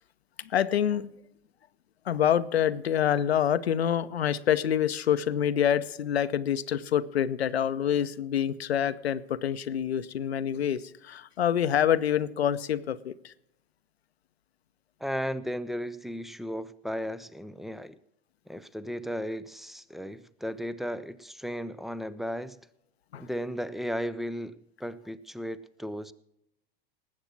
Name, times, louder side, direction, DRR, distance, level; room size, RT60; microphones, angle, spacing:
voice 1, 0.5-1.1 2.1-13.3 23.1-23.2, left 9 dB, 80° left, 0.8 m, -26 dB
voice 2, 15.0-17.9 18.5-22.6 23.2-26.1, equal, ahead, 0.5 m, -35 dB
19.0 x 7.9 x 5.9 m
figure-of-eight pair, 90°, 31 cm